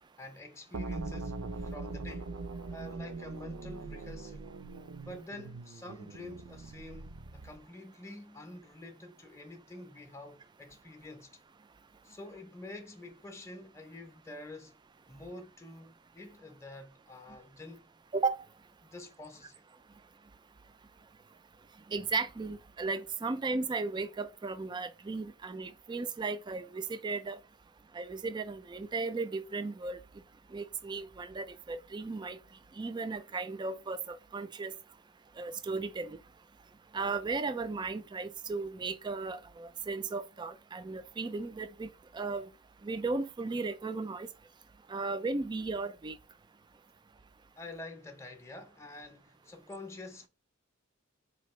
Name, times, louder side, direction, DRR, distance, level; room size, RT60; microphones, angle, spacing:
voice 1, 0.2-2.4 2.7-4.5 5.0-11.3 12.0-14.8 15.1-17.9 18.8-19.6 47.6-50.3, left 2 dB, 15° left, 0.6 m, -47 dB
sound 1, 0.7-7.6, right 3 dB, 75° right, 0.5 m, -41 dB
voice 2, 18.1-18.4 21.9-27.4 27.9-30.0 30.5-32.4 32.8-34.7 35.4-36.2 36.9-41.9 42.1-42.5 42.8-44.3 44.9-46.2, right 3 dB, 20° right, 0.3 m, -35 dB
4.3 x 2.7 x 3.0 m
head